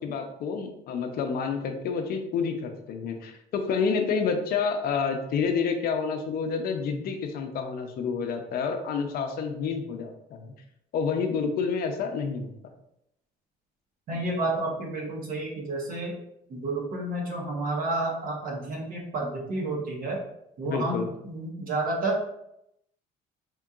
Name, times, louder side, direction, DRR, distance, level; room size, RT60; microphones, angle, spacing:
voice 1, 0.0-10.5 10.9-12.5 20.7-21.1, left 5 dB, 65° left, 5 dB, 0.6 m, -29 dB
voice 2, 14.1-16.2 16.5-20.2 20.6-22.2, right 2 dB, 55° right, -1 dB, 1.1 m, -30 dB
4.4 x 2.8 x 2.4 m, 0.79 s
cardioid pair, 110°, 17 cm